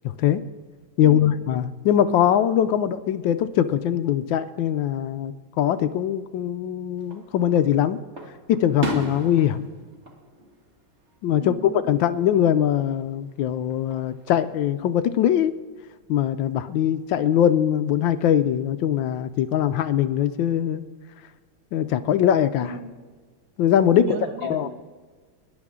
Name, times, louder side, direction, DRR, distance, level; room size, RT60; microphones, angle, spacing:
voice 1, 0.0-0.4 1.0-8.0 8.5-9.7 11.2-15.5 16.1-20.8 21.7-22.8 23.6-24.0 24.4-24.7, left 10 dB, 75° left, 12 dB, 1.3 m, -22 dB
voice 2, 1.0-1.3 11.3-11.8 22.6-22.9 24.0-24.7, right 4 dB, 70° right, 6 dB, 2.0 m, -34 dB
Fireworks, 7.0-7.7 8.2-11.3 11.6-12.2 13.7-14.5, equal, 35° right, 1.7 m, -34 dB
23.0 x 11.0 x 3.7 m, 1.5 s
omnidirectional pair, 2.2 m